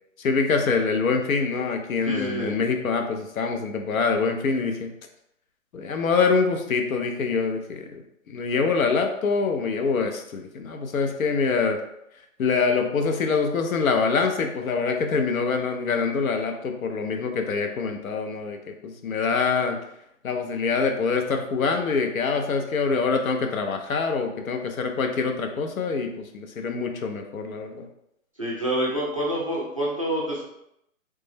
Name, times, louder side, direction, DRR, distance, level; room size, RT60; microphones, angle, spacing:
voice 1, 0.2-4.9 5.7-11.8 12.4-18.6 18.8-19.8 20.2-27.9, left 4 dB, 85° left, 5 dB, 0.7 m, -25 dB
voice 2, 2.0-2.6 28.4-30.4, equal, 25° right, -5 dB, 0.4 m, -27 dB
3.2 x 2.0 x 3.3 m, 0.80 s
hypercardioid pair, 165°, 41 cm